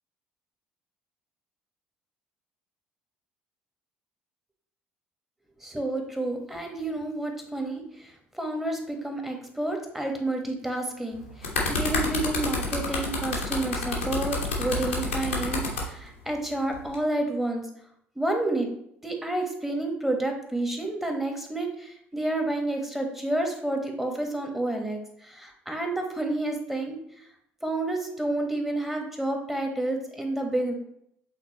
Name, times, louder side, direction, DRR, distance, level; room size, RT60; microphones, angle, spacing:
voice 1, 5.6-17.7 18.1-18.7 19.0-27.0 27.6-30.7, right 2 dB, 5° right, 3 dB, 1.4 m, -30 dB
sound 1, 11.1-15.8 16.7-16.9, left 3 dB, 80° left, 1.1 m, -29 dB
8.0 x 3.9 x 3.0 m, 0.72 s
figure-of-eight pair, 55°, 7 cm